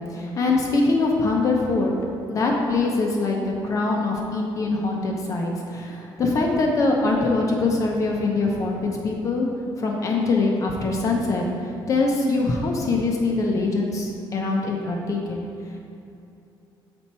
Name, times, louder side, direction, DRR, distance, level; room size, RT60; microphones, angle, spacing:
voice 1, 0.0-1.9 2.3-8.8 9.0-9.5 9.8-11.4 11.9-15.4, left 3 dB, 40° left, 0 dB, 0.7 m, -23 dB
6.0 x 4.3 x 4.3 m, 2.8 s
cardioid pair, 155°, 9 cm